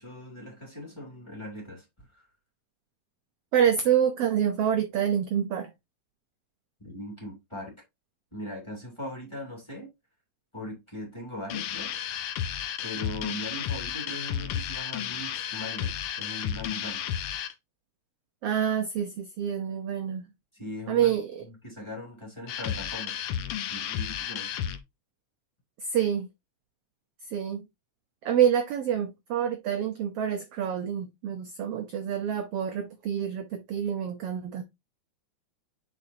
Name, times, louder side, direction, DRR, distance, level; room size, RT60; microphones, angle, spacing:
voice 1, 0.0-2.3 6.8-7.7 8.3-9.9 10.5-11.9 12.8-17.1 20.5-21.1 21.5-23.2 23.7-24.5, left 1 dB, 10° left, 2.4 m, -40 dB
voice 2, 3.5-5.7 18.4-20.3 20.9-21.5 25.8-26.3 27.3-27.7 28.2-34.6, right 9 dB, 70° right, 1.5 m, -27 dB
sound 1, 11.5-17.5 22.5-24.8, left 9 dB, 80° left, 1.2 m, -33 dB
9.7 x 4.5 x 2.7 m
omnidirectional pair, 3.5 m